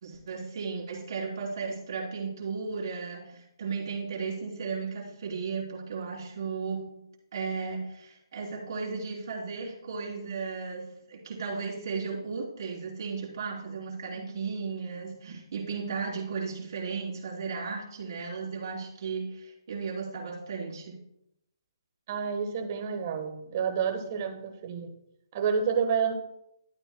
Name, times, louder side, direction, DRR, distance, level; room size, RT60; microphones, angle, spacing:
voice 1, 0.0-7.0 7.3-21.0 24.7-24.8, right 5 dB, 55° right, -3 dB, 3.5 m, -35 dB
voice 2, 22.1-24.9 25.3-26.1, right 6 dB, 35° right, 7 dB, 1.3 m, -29 dB
12.0 x 8.8 x 2.2 m, 0.82 s
hypercardioid pair, 155°, 2 cm